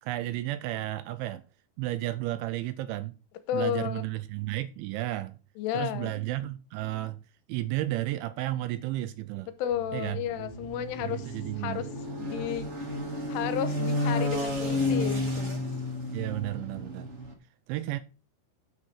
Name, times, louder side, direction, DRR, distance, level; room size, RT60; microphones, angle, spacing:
voice 1, 0.0-1.4 1.8-3.1 3.5-5.4 5.7-7.2 7.5-9.5 9.9-10.2 11.0-11.9 16.1-17.1 17.7-18.0, right 16 dB, 80° right, 2.7 m, -33 dB
voice 2, 3.5-4.0 5.6-6.1 9.6-11.9 12.2-12.7 13.3-15.6, left 10 dB, 85° left, 3.2 m, -32 dB
sound 1, 9.7-17.3, left 1 dB, 45° right, 0.8 m, -32 dB
9.2 x 7.6 x 5.6 m
omnidirectional pair, 5.8 m